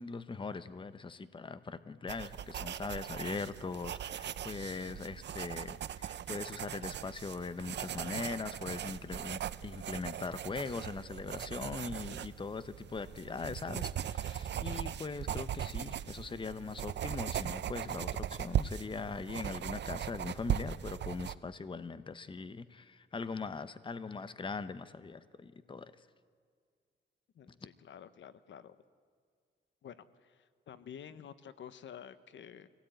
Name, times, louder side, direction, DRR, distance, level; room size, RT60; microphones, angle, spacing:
voice 1, 0.0-26.0, left 4 dB, 25° left, 13 dB, 0.9 m, -41 dB
sound 1, 2.1-21.3, right 10 dB, 70° right, 0.6 m, -39 dB
voice 2, 27.3-28.8 29.8-32.7, left 8 dB, 80° left, 14 dB, 1.0 m, -50 dB
24.0 x 17.5 x 9.2 m, 2.1 s
wide cardioid pair, 125°, 19 cm